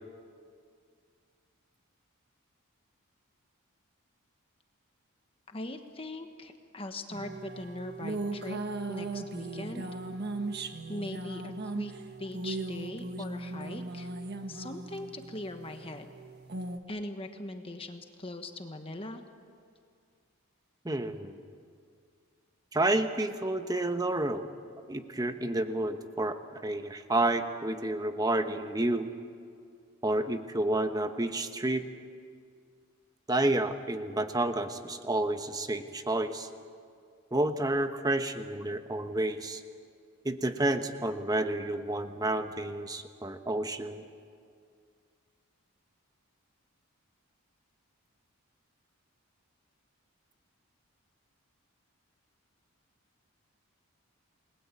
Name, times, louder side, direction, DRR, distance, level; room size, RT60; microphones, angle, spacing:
voice 1, 5.5-8.6 8.9-9.9 10.9-11.9 12.2-14.1 14.5-16.1 16.9-19.2, left 1 dB, 25° left, 6 dB, 1.3 m, -40 dB
sound 1, 7.1-16.8, right 2 dB, 45° right, 1.5 m, -38 dB
voice 2, 20.8-21.4 22.7-24.5 24.9-26.4 26.6-29.1 30.0-31.8 33.3-36.5 37.3-39.6 40.2-44.0, right 2 dB, 15° right, 8 dB, 1.1 m, -30 dB
29.0 x 20.5 x 8.4 m, 2.2 s
head